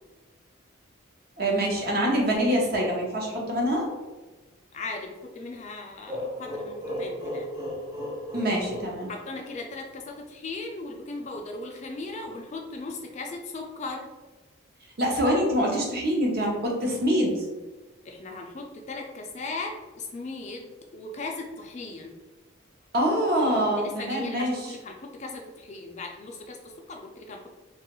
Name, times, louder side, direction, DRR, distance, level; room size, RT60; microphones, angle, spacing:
voice 1, 1.4-3.9 8.3-9.1 15.0-17.5 22.9-24.7, equal, 50° right, -2 dB, 0.7 m, -25 dB
voice 2, 4.7-7.7 9.1-14.1 18.0-22.2 23.5-27.5, left 3 dB, 35° left, 2 dB, 0.3 m, -38 dB
sound 1, 6.1-9.8, equal, 15° right, 0.6 m, -35 dB
2.8 x 2.3 x 2.9 m, 1.2 s
head